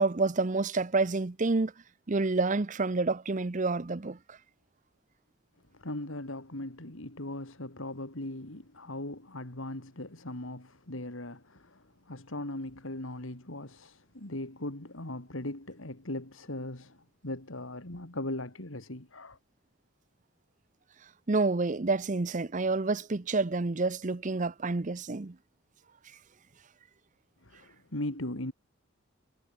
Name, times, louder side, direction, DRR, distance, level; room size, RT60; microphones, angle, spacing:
voice 1, 0.0-1.7 2.1-4.2 21.3-25.3, right 3 dB, 35° right, 0.7 m, -28 dB
voice 2, 5.7-19.4 27.4-28.5, left 1 dB, 65° left, 2.9 m, -39 dB
head